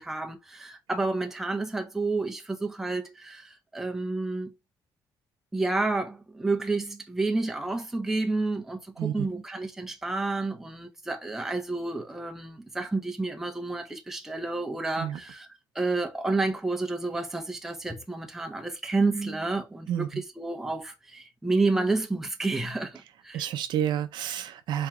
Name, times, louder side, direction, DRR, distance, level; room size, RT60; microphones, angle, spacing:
voice 1, 0.0-4.5 5.5-15.5 15.7-23.5, right 3 dB, 5° right, 0.6 m, -30 dB
voice 2, 19.9-20.2 23.3-24.9, right 10 dB, 60° right, 0.6 m, -30 dB
4.3 x 2.8 x 3.6 m
cardioid pair, 165°, 9 cm